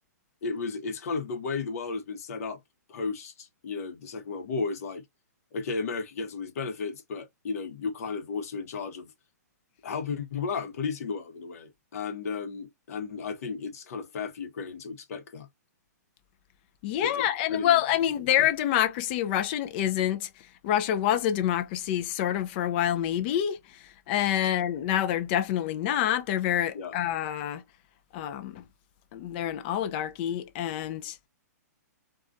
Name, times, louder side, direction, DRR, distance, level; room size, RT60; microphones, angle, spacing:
voice 1, 0.4-2.6 2.9-5.0 5.5-9.1 9.8-15.5 17.0-17.8 26.7-27.0, left 4 dB, 60° left, 0.8 m, -34 dB
voice 2, 16.8-20.3 20.6-27.6 28.1-28.6 29.1-31.2, left 11 dB, 35° left, 0.4 m, -27 dB
2.5 x 2.3 x 2.2 m
hypercardioid pair, 140°, 9 cm